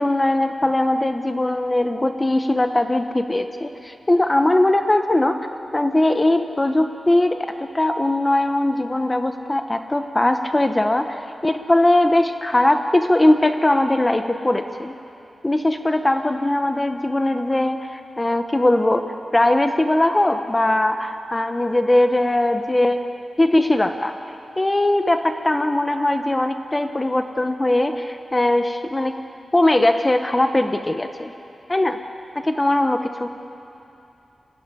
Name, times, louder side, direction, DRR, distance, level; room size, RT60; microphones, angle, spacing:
voice 1, 0.0-14.9 15.4-23.1 23.4-24.1 24.6-29.2 29.5-31.3 31.7-32.0 32.3-33.3, left 1 dB, 15° left, 7 dB, 0.8 m, -20 dB
26.5 x 17.5 x 9.7 m, 2.8 s
wide cardioid pair, 155°, 0 cm